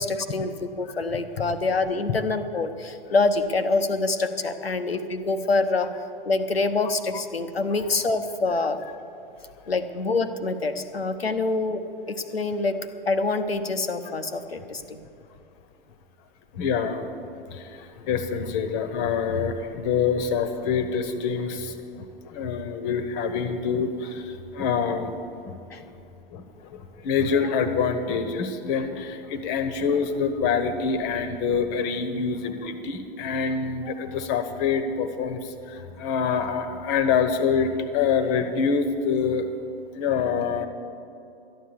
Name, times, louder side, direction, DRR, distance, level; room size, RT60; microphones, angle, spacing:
voice 1, 0.0-5.9 6.2-8.8 9.7-11.8 12.1-12.8 13.1-15.0 25.7-25.8, left 3 dB, 85° left, 9 dB, 1.0 m, -26 dB
voice 2, 16.5-17.1 17.5-25.1 25.4-25.8 26.3-39.5 39.9-40.7, left 6 dB, 35° left, 9 dB, 1.2 m, -26 dB
13.0 x 10.0 x 7.1 m, 2.7 s
figure-of-eight pair, 105°, 30 cm